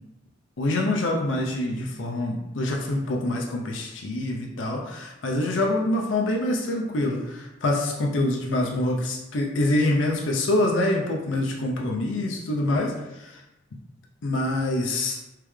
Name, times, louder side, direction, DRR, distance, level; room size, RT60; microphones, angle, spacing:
voice 1, 0.6-13.4 14.2-15.2, left 1 dB, 85° left, 0 dB, 0.6 m, -25 dB
3.4 x 3.3 x 3.2 m, 0.96 s
head